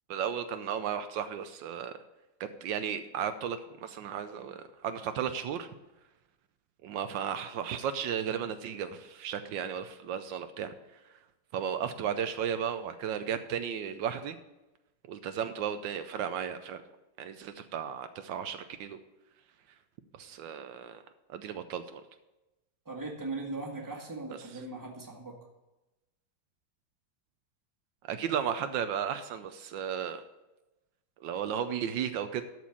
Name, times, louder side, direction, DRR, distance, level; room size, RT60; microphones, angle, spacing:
voice 1, 0.1-1.9 2.4-5.7 6.8-10.7 11.5-14.4 15.1-16.8 17.2-19.0 20.2-21.0 21.3-22.0 28.1-30.2 31.2-32.4, right 8 dB, 80° right, 9 dB, 1.3 m, -34 dB
voice 2, 22.8-25.4, right 3 dB, 10° right, 0 dB, 1.5 m, -39 dB
12.5 x 4.6 x 7.1 m, 1.0 s
omnidirectional pair, 2.0 m